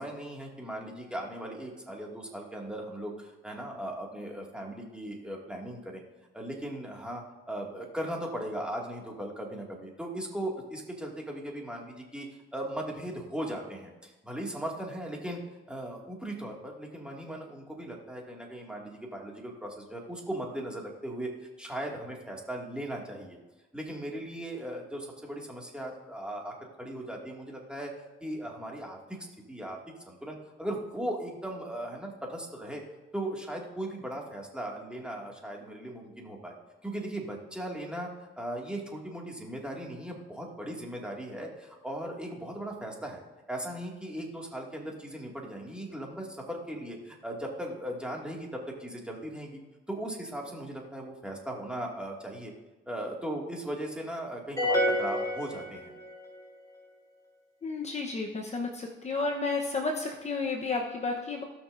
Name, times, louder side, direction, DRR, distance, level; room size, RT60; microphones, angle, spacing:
voice 1, 0.0-6.0 6.3-15.4 15.7-21.3 21.6-23.4 23.7-27.9 28.2-29.2 29.5-29.8 30.1-32.8 33.1-36.5 36.8-38.1 38.4-43.2 43.5-49.6 49.9-52.5 52.9-55.9, right 1 dB, 5° right, -1 dB, 2.3 m, -38 dB
sound 1, 54.6-56.3, left 1 dB, 15° left, 3.4 m, -28 dB
voice 2, 57.6-61.4, left 3 dB, 35° left, 1 dB, 1.1 m, -32 dB
17.5 x 6.3 x 2.7 m, 1.1 s
cardioid pair, 90°, 20 cm